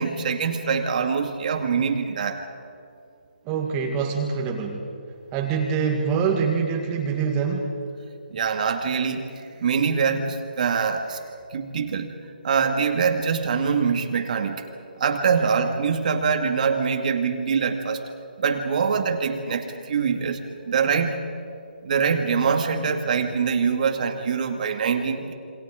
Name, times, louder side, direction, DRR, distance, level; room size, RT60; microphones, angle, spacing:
voice 1, 0.0-2.5 8.3-11.2 11.5-12.2 12.4-14.7 15.0-18.0 18.4-20.4 20.7-21.2 21.8-25.3, right 6 dB, 50° right, 4 dB, 2.1 m, -24 dB
voice 2, 3.5-4.9 5.3-7.7, right 6 dB, 20° right, 1 dB, 2.0 m, -25 dB
27.5 x 25.0 x 5.1 m, 2.4 s
hypercardioid pair, 155°, 5 cm